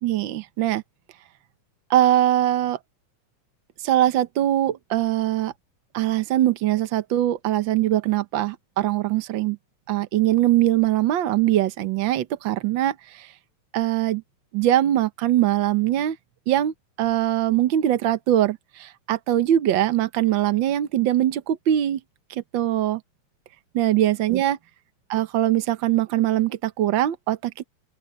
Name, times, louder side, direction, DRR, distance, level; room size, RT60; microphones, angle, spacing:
voice 1, 0.0-0.8 1.9-2.8 3.8-5.5 5.9-9.6 9.9-13.3 13.7-14.2 14.5-16.2 16.5-22.0 22.3-23.0 23.7-24.6 25.1-27.6, right 13 dB, 90° right, 1.0 m, -22 dB
open air
omnidirectional pair, 3.4 m